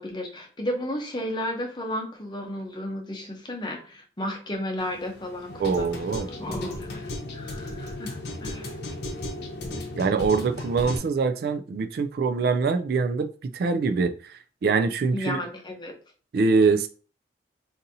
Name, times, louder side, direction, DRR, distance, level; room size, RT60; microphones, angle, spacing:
voice 1, 0.0-8.8 15.1-15.9, left 1 dB, 25° left, 0.7 m, -33 dB
sound 1, 4.8-11.0, left 1 dB, 65° left, 0.7 m, -35 dB
voice 2, 5.6-6.3 10.0-15.4 16.3-16.9, right 4 dB, 60° right, 0.3 m, -24 dB
3.9 x 2.6 x 2.7 m
head